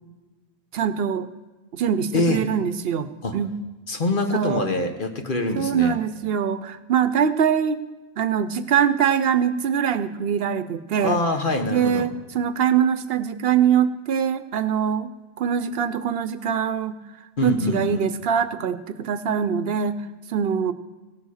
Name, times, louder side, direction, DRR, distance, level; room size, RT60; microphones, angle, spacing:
voice 1, 0.7-1.3 1.7-3.6 4.3-4.7 5.5-7.8 8.2-11.2 11.7-15.1 15.4-17.0 17.4-20.0 20.3-20.7, right 8 dB, 70° right, 12 dB, 0.8 m, -23 dB
voice 2, 3.9-6.0 11.0-12.1 17.4-18.1, left 2 dB, 50° left, 5 dB, 1.4 m, -24 dB
16.5 x 8.1 x 6.4 m, 1.2 s
omnidirectional pair, 1.1 m